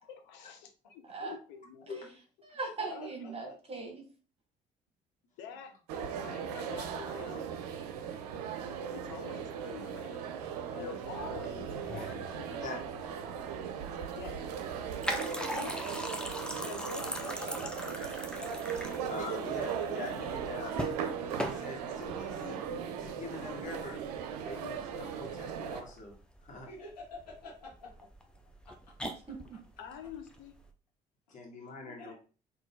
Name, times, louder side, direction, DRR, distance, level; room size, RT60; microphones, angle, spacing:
voice 1, 0.1-2.0 2.9-3.3 5.4-5.8 6.1-7.5 8.9-10.3 10.8-12.8 14.1-14.4 15.4-15.8 16.6-17.0 29.8-30.5, left 7 dB, 65° left, 6 dB, 0.9 m, -46 dB
voice 2, 1.0-1.4 1.9-2.1 2.4-4.1 29.3-29.6, right 3 dB, 30° right, 1 dB, 1.5 m, -40 dB
voice 3, 2.8-3.6 5.5-5.7 10.7-11.4 16.9-19.1 19.4-19.6 26.7-27.9 28.6-28.9 31.3-31.4 31.8-32.1, left 2 dB, 85° left, -1 dB, 1.3 m, -49 dB
sound 1, 5.9-25.8, right 7 dB, 75° right, 0.6 m, -38 dB
sound 2, 11.1-30.7, equal, 5° left, 0.8 m, -42 dB
voice 4, 12.6-13.1 19.1-20.9 21.4-22.6 23.0-24.0 24.4-26.1 26.4-26.7 31.3-32.1, left 3 dB, 40° left, 0 dB, 1.6 m, -43 dB
3.9 x 2.7 x 3.8 m, 0.36 s
hypercardioid pair, 55°, 20 cm